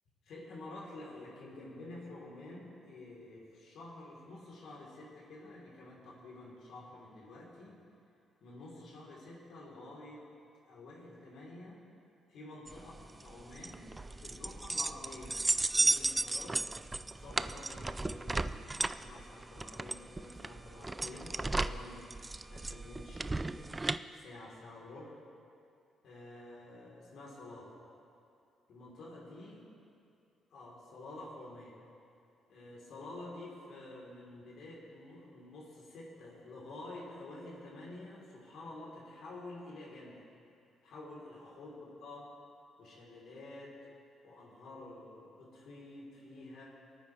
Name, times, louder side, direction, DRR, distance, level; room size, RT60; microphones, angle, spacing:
voice 1, 0.2-7.8 8.4-10.3 10.7-11.8 12.3-16.6 17.2-22.1 22.5-25.1 26.0-27.8 28.7-29.7 30.5-31.8 32.5-40.2 40.8-42.3 42.8-43.8 44.2-46.8, left 2 dB, 75° left, -4 dB, 3.3 m, -49 dB
sound 1, 12.7-24.0, right 2 dB, 20° right, 0.4 m, -35 dB
22.0 x 9.1 x 3.2 m, 2.5 s
cardioid pair, 90°, 0 cm